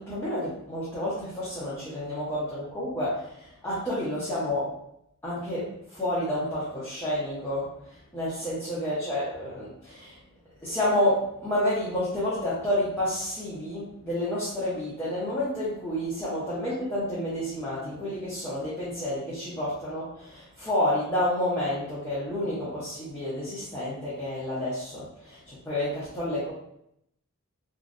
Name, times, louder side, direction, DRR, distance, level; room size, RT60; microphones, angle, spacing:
voice 1, 0.0-4.7 5.2-10.2 10.6-26.5, left 1 dB, 10° left, -11 dB, 0.7 m, -30 dB
3.1 x 2.4 x 2.5 m, 0.74 s
head